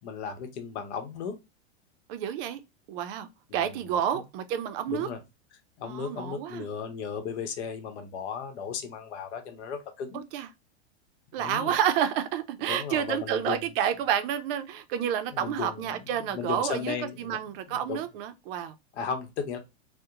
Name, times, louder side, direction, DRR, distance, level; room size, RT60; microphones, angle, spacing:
voice 1, 0.0-1.4 3.5-3.9 4.1-4.2 4.9-5.2 5.8-10.2 11.4-11.7 12.7-13.7 15.3-17.4 17.7-18.0 18.9-19.6, left 6 dB, 70° left, 0.8 m, -35 dB
voice 2, 2.1-2.6 2.9-5.1 5.8-6.7 10.1-10.5 11.3-18.7, right 9 dB, 55° right, 0.5 m, -30 dB
2.7 x 2.1 x 2.3 m
supercardioid pair, 125°, 34 cm